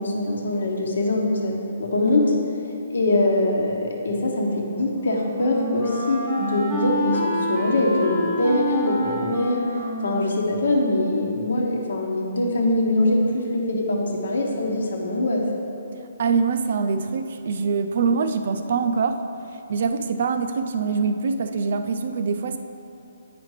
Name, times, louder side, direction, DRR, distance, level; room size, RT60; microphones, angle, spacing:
voice 1, 0.0-2.3 2.9-9.6 10.0-15.4, left 2 dB, 75° left, 0 dB, 1.1 m, -23 dB
Wind instrument woodwind instrument, 4.4-11.3, equal, 10° left, 0.7 m, -29 dB
voice 2, 16.2-19.2 19.7-22.6, right 5 dB, 50° right, 8 dB, 0.4 m, -24 dB
9.4 x 5.0 x 3.2 m, 2.8 s
hypercardioid pair, 170°, 0 cm